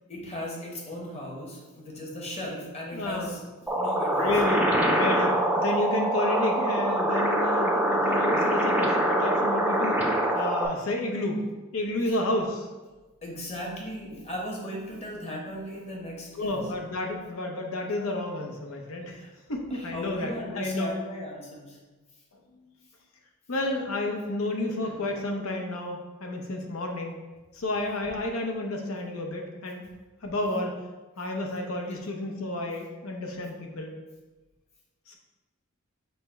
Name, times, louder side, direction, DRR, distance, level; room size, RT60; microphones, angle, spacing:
voice 1, 0.1-3.4 3.7-4.4 12.1-12.2 13.2-16.7 19.1-19.3 19.7-21.8, left 1 dB, 30° left, -2 dB, 1.0 m, -37 dB
voice 2, 2.9-3.3 4.2-10.0 10.3-11.4 11.7-12.7 16.3-19.2 19.5-20.9 22.5-22.7 23.5-27.2 27.5-29.8 30.2-30.8 31.2-33.9 35.1-35.2, left 2 dB, 85° left, 2 dB, 0.7 m, -31 dB
sound 1, 3.7-10.7, right 1 dB, 5° right, 0.5 m, -24 dB
5.6 x 2.1 x 4.4 m, 1.2 s
head